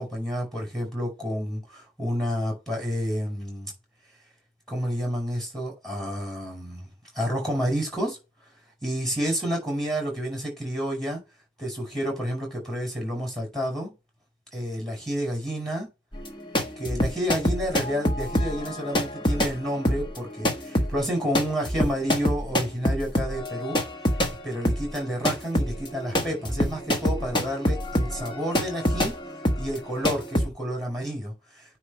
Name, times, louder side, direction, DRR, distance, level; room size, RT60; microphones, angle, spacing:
voice 1, 0.0-3.7 4.7-6.9 7.2-8.2 8.8-11.2 11.6-13.9 14.5-15.9 16.8-23.8 24.4-29.2 29.6-31.3, equal, ahead, 5.2 m, -30 dB
sound 1, 16.1-24.4 24.6-30.5, equal, 25° left, 1.3 m, -26 dB
9.5 x 3.2 x 6.6 m
head